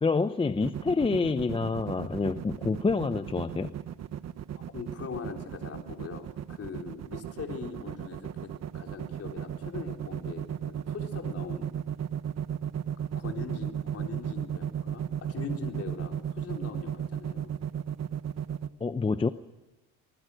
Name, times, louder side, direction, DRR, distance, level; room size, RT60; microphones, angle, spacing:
voice 1, 0.0-3.7 18.8-19.3, left 4 dB, 15° left, 0.7 m, -27 dB
sound 1, 0.6-18.7, right 9 dB, 50° right, 1.2 m, -34 dB
voice 2, 4.6-11.7 13.2-17.5, left 6 dB, 45° left, 4.0 m, -41 dB
24.5 x 20.5 x 6.4 m
cardioid pair, 115°, 33 cm